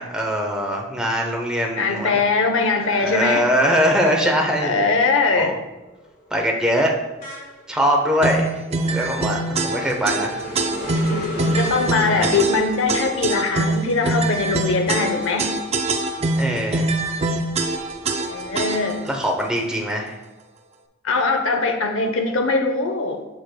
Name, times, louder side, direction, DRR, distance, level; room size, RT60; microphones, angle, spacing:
voice 1, 0.0-2.1 2.9-4.8 5.4-5.6 6.3-6.9 7.7-8.5 8.9-10.4 12.1-12.3 16.4-16.9 19.0-20.2, equal, 5° right, 0 dB, 0.8 m, -22 dB
voice 2, 1.8-3.4 4.6-5.5 11.6-15.6 18.0-19.1 21.0-23.2, left 3 dB, 85° left, 5 dB, 0.7 m, -21 dB
sound 1, 4.5-4.7 5.1-16.3 16.8-18.5, left 1 dB, 45° left, 1.7 m, -36 dB
sound 2, 8.2-19.1, right 2 dB, 30° right, 0.4 m, -24 dB
7.6 x 6.4 x 2.2 m, 1.0 s
head